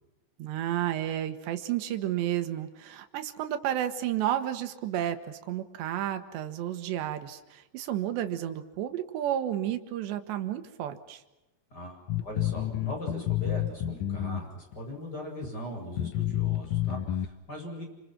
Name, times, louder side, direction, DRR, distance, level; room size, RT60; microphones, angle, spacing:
voice 1, 0.4-11.2, right 11 dB, 85° right, 8 dB, 3.8 m, -31 dB
voice 2, 11.7-17.8, equal, 20° left, 1 dB, 8.3 m, -40 dB
sound 1, 12.1-14.8 15.4-15.5 16.0-17.3, left 12 dB, 75° left, 1.8 m, -29 dB
29.5 x 26.5 x 6.2 m, 1.0 s
omnidirectional pair, 4.9 m